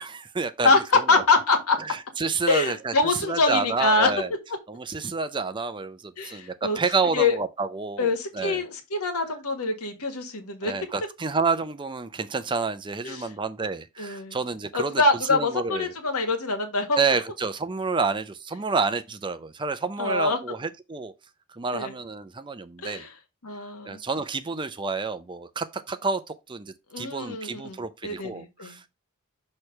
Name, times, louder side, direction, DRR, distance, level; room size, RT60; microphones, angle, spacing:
voice 1, 0.0-1.1 1.8-2.9 3.3-4.3 4.7-8.6 10.6-15.0 15.3-15.9 17.0-21.1 21.5-23.1 23.8-28.9, right 4 dB, 20° right, 0.5 m, -29 dB
voice 2, 0.6-1.8 2.5-4.1 6.2-6.8 7.1-7.4 8.0-10.7 13.0-13.3 14.0-14.4 14.7-17.0 20.0-20.4 21.7-22.0 22.8-23.1 23.4-24.0 26.9-28.9, left 3 dB, 80° left, 1.7 m, -24 dB
6.2 x 3.3 x 5.6 m
head